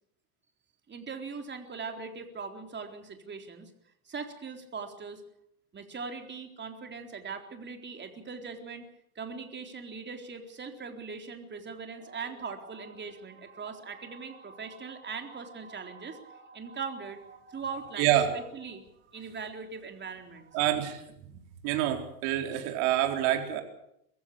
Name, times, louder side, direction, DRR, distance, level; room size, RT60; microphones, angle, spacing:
voice 1, 0.9-3.7 4.0-5.2 5.7-8.9 9.2-20.6, right 5 dB, 25° right, 5 dB, 4.0 m, -40 dB
voice 2, 18.0-18.3 20.5-21.0 21.6-23.6, right 12 dB, 65° right, 5 dB, 4.1 m, -27 dB
22.5 x 15.5 x 8.6 m, 0.76 s
supercardioid pair, 100°, 43 cm